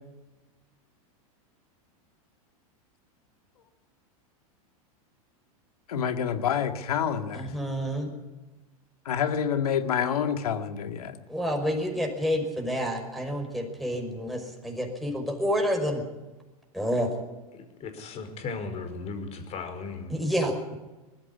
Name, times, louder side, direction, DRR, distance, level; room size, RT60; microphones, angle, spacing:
voice 1, 5.9-7.5 9.1-11.2, left 8 dB, 85° left, 8 dB, 2.2 m, -27 dB
voice 2, 7.3-8.1 11.3-16.0 16.7-17.1 20.1-20.8, equal, ahead, 4 dB, 5.5 m, -29 dB
voice 3, 17.5-20.1, left 4 dB, 35° left, 7 dB, 5.1 m, -36 dB
20.0 x 14.5 x 9.8 m, 1.1 s
hypercardioid pair, 120°, 19 cm